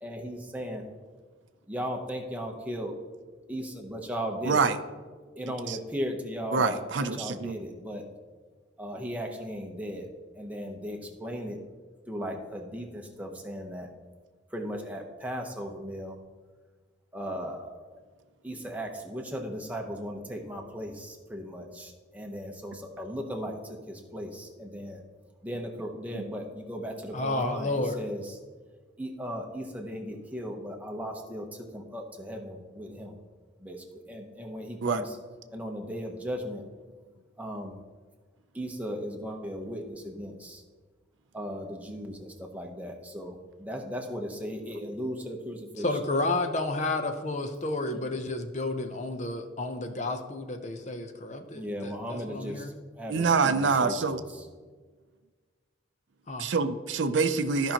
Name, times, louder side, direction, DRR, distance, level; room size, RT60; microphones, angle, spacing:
voice 1, 0.0-0.9 1.7-3.0 3.5-4.6 5.4-8.1 8.8-10.1 10.3-11.6 12.1-13.9 14.5-16.2 17.1-18.0 18.4-25.0 25.4-28.4 29.0-33.1 33.6-35.2 35.5-36.6 37.4-37.7 38.5-40.6 41.3-46.0 47.9-48.0 51.5-54.5, equal, 10° right, 1 dB, 0.8 m, -37 dB
voice 2, 4.4-4.8 5.7-5.8 6.5-7.6 26.1-26.2 34.8-35.1 53.1-54.2 56.4-57.7, right 4 dB, 70° right, 10 dB, 0.5 m, -26 dB
voice 3, 27.1-28.0 45.8-52.7 56.3-56.5, left 2 dB, 35° left, 6 dB, 0.6 m, -31 dB
14.0 x 5.4 x 2.9 m, 1.5 s
head